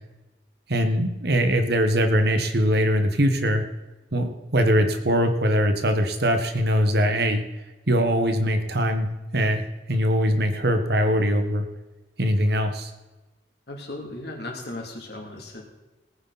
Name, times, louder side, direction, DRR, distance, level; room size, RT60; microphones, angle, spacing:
voice 1, 0.7-3.6 4.1-7.4 7.9-9.1 9.3-11.7 12.2-12.9, equal, 60° right, 7 dB, 1.4 m, -22 dB
voice 2, 13.7-15.6, left 2 dB, 60° left, 1 dB, 3.0 m, -36 dB
19.0 x 9.6 x 4.2 m, 1.1 s
head